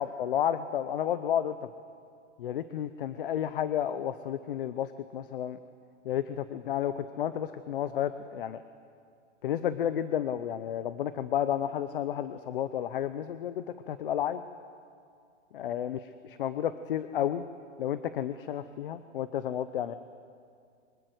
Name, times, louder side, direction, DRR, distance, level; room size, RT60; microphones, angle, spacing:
voice 1, 0.0-1.7 2.4-5.6 6.0-8.6 9.4-14.4 15.5-17.4 17.8-20.0, left 10 dB, 45° left, 12 dB, 0.7 m, -31 dB
24.5 x 22.0 x 7.9 m, 2.3 s
hypercardioid pair, 170°, 37 cm